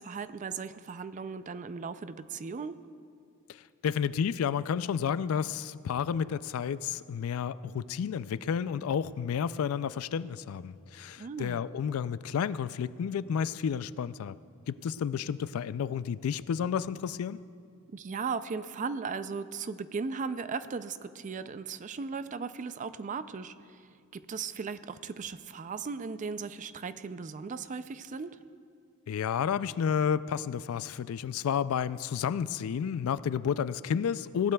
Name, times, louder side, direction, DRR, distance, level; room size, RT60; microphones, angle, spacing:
voice 1, 0.0-2.8 11.2-11.6 17.9-23.8 24.1-28.3, right 5 dB, 35° right, 13 dB, 0.4 m, -37 dB
voice 2, 3.5-14.4 14.7-17.4 29.1-34.5, left 7 dB, 85° left, 16 dB, 0.3 m, -31 dB
20.0 x 16.0 x 2.3 m, 2.3 s
head